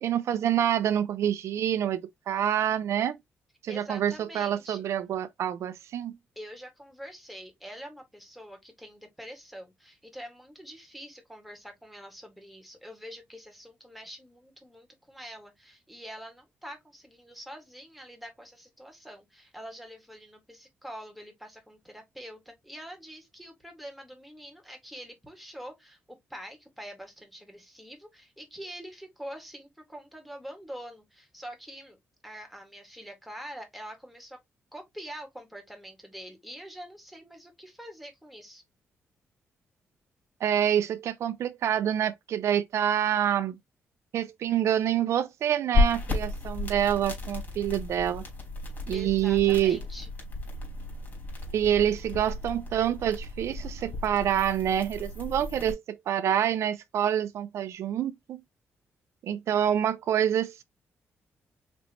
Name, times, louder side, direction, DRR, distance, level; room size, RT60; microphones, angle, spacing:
voice 1, 0.0-3.2 3.6-6.2 40.4-43.6 44.1-48.2 48.9-49.8 51.5-58.4 59.2-60.6, right 10 dB, 75° right, 0.6 m, -27 dB
voice 2, 3.7-4.8 6.4-34.4 34.7-38.6 48.9-50.1, equal, ahead, 1.8 m, -45 dB
sound 1, 45.7-55.7, left 3 dB, 40° left, 3.5 m, -33 dB
5.1 x 3.4 x 2.9 m
cardioid pair, 125°, 5 cm